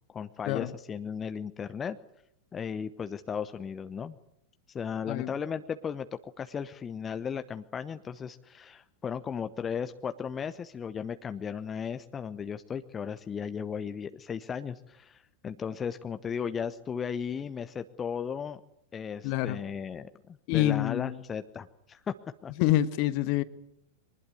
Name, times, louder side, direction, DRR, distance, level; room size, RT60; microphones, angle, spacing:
voice 1, 0.1-2.0 2.5-4.2 4.7-6.1 6.4-18.6 18.9-22.1 22.4-22.5, left 7 dB, 20° left, 10 dB, 1.0 m, -36 dB
voice 2, 19.2-19.6 20.5-21.2 22.6-23.4, left 14 dB, 45° left, 14 dB, 1.5 m, -26 dB
24.0 x 20.0 x 9.5 m, 0.75 s
figure-of-eight pair, 90°, 0 cm